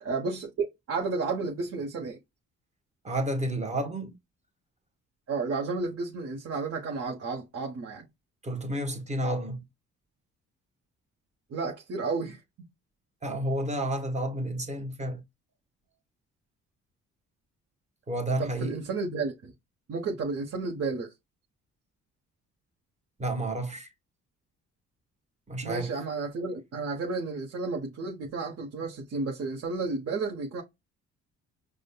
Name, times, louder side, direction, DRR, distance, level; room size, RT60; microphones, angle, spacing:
voice 1, 0.0-2.2 5.3-8.0 11.5-12.4 18.4-19.5 19.9-21.1 25.6-30.6, right 4 dB, 55° right, 1.1 m, -32 dB
voice 2, 3.0-4.1 8.4-9.6 13.2-15.2 18.1-18.8 23.2-23.9 25.5-25.9, right 1 dB, 25° right, 1.2 m, -31 dB
5.0 x 2.2 x 2.2 m
cardioid pair, 90°, 30 cm